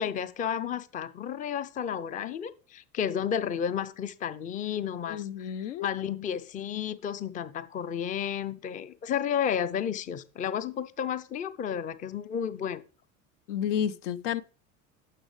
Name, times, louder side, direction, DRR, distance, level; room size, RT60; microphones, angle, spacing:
voice 1, 0.0-12.8, left 8 dB, 20° left, 0.5 m, -32 dB
voice 2, 5.1-5.9 13.5-14.4, left 9 dB, 65° left, 0.5 m, -31 dB
9.8 x 6.5 x 3.2 m
figure-of-eight pair, 70°, 40 cm